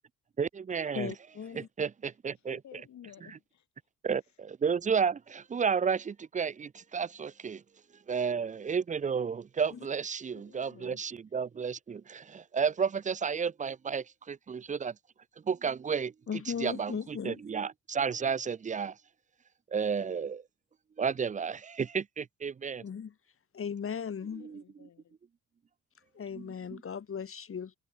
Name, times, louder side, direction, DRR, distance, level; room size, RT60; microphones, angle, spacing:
voice 1, 0.4-1.1 1.5-2.6 4.0-7.6 8.1-14.9 15.5-16.1 16.6-19.0 19.7-20.4 21.0-22.8 24.4-24.6 26.4-26.8, right 6 dB, 25° right, 0.5 m, -32 dB
voice 2, 0.9-1.7 9.7-9.8 16.3-17.4 22.8-23.1 23.5-24.4 26.1-27.8, left 7 dB, 45° left, 4.9 m, -37 dB
voice 3, 2.5-3.7 4.2-4.4 10.3-11.0 24.4-25.2, left 10 dB, 65° left, 7.6 m, -54 dB
cardioid pair, 90°, 30 cm